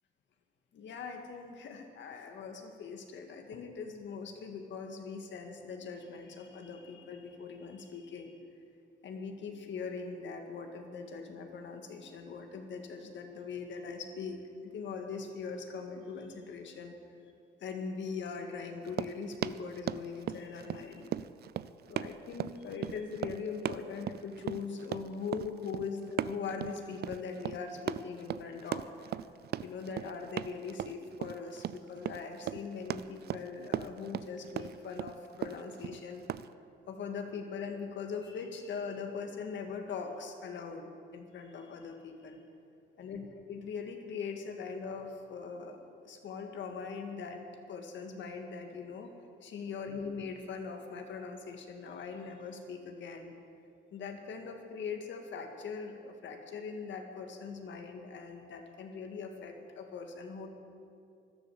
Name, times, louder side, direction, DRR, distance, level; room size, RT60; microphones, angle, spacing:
voice 1, 0.7-8.3 9.0-17.0 17.6-21.1 21.9-29.2 29.6-36.2 36.9-42.4 43.0-45.8 46.1-49.1 49.4-53.3 53.9-60.5, left 5 dB, 70° left, 4 dB, 1.8 m, -41 dB
Run, 18.8-36.5, right 11 dB, 55° right, 0.4 m, -38 dB
13.5 x 12.0 x 7.1 m, 2.5 s
cardioid pair, 90°, 20 cm